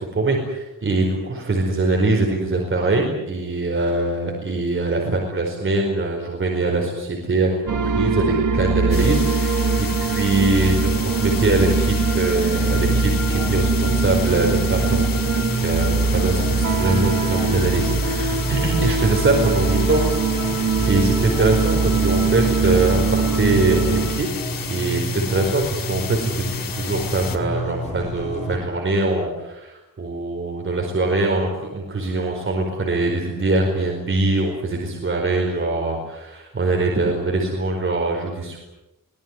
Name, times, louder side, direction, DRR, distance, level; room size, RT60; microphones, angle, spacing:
voice 1, 0.1-7.6 7.8-20.1 20.6-24.3 24.7-38.6, right 2 dB, 35° right, 1 dB, 4.8 m, -23 dB
sound 1, 7.7-24.2, right 4 dB, 65° right, 2.3 m, -22 dB
sound 2, 8.9-27.4, left 7 dB, 85° left, 2.7 m, -33 dB
sound 3, 12.6-28.6, right 1 dB, 20° left, 4.2 m, -30 dB
24.0 x 19.0 x 9.7 m, 0.97 s
wide cardioid pair, 160°, 33 cm